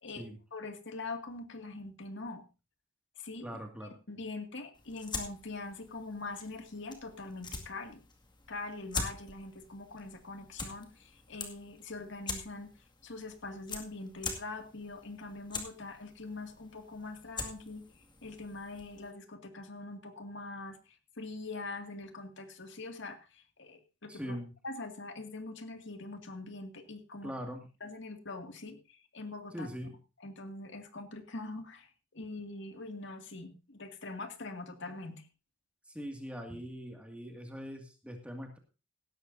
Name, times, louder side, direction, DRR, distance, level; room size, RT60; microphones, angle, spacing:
voice 1, 0.0-2.4 3.2-3.5 4.1-8.0 8.5-12.7 13.0-17.8 18.2-20.8 21.2-24.4 24.6-27.3 27.8-29.7 30.2-35.2, left 3 dB, 65° left, 6 dB, 2.2 m, -43 dB
voice 2, 3.4-3.9 24.1-24.5 27.2-27.7 29.5-30.0 35.9-38.6, equal, 5° right, 3 dB, 2.1 m, -41 dB
sound 1, 4.7-19.1, left 4 dB, 25° left, 2.1 m, -44 dB
17.0 x 13.0 x 2.7 m, 0.31 s
head